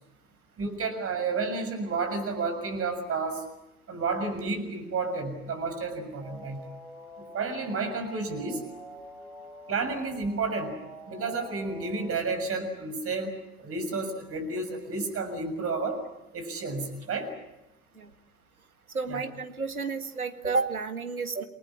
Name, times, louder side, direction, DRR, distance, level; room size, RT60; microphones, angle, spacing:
voice 1, 0.6-3.4 3.9-6.6 7.2-8.6 9.7-10.8 11.1-13.3 13.6-16.0 16.3-17.3 19.1-19.2, right 3 dB, 30° right, 8 dB, 6.9 m, -31 dB
sound 1, 6.2-12.2, equal, 10° right, 7.0 m, -46 dB
voice 2, 18.9-21.4, right 4 dB, 80° right, 8 dB, 1.9 m, -31 dB
28.5 x 20.0 x 8.7 m, 0.92 s
figure-of-eight pair, 75°, 43 cm